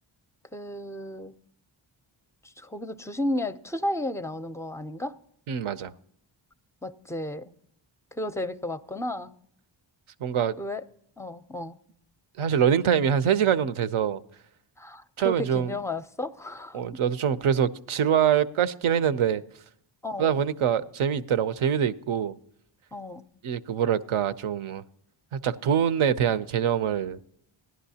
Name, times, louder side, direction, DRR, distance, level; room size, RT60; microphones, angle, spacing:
voice 1, 0.5-1.4 2.4-5.2 6.8-7.5 8.1-9.3 10.6-10.8 11.2-11.8 14.8-17.0 20.0-20.4 22.9-23.2, left 1 dB, 5° left, 0.5 m, -33 dB
voice 2, 5.5-5.9 10.2-10.5 12.4-14.2 15.2-15.7 16.7-19.4 20.2-22.3 23.4-24.8 25.3-27.2, right 8 dB, 75° right, 0.7 m, -24 dB
16.5 x 11.0 x 2.8 m
cardioid pair, 55°, 50 cm